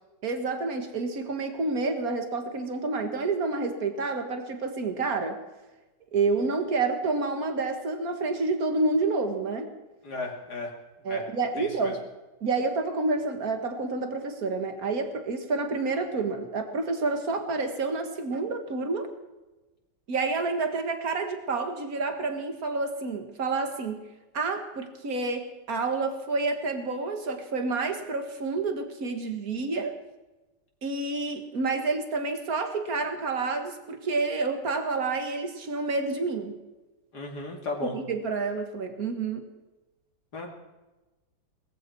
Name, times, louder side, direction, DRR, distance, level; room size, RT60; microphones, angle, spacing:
voice 1, 0.2-5.4 6.1-9.7 11.0-12.0 12.4-19.1 20.1-24.0 24.3-29.9 30.8-36.6 37.8-39.5, right 3 dB, 55° right, 6 dB, 2.1 m, -29 dB
voice 2, 10.0-10.7 11.0-11.2 11.6-11.9 37.1-38.0 40.3-40.5, left 2 dB, 70° left, 0 dB, 3.1 m, -35 dB
19.5 x 14.5 x 4.6 m, 1.1 s
omnidirectional pair, 1.9 m